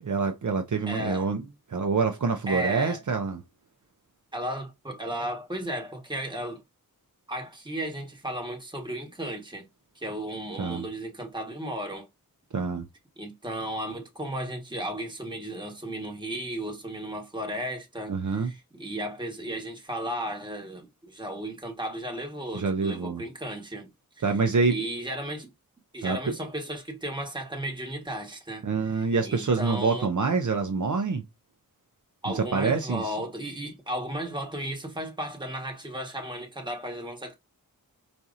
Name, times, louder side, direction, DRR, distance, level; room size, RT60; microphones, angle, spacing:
voice 1, 0.0-1.4 1.7-3.4 10.6-10.8 12.5-12.9 18.1-18.5 22.5-23.2 24.2-24.8 26.0-26.3 28.6-31.2 32.3-33.1, right 4 dB, 55° right, 0.6 m, -26 dB
voice 2, 0.9-1.3 2.5-3.0 4.3-6.6 7.3-9.7 9.9-12.1 13.2-23.9 24.7-25.5 25.9-30.1 32.2-37.3, right 1 dB, 15° right, 1.2 m, -34 dB
5.1 x 2.8 x 2.5 m
wide cardioid pair, 90°, 36 cm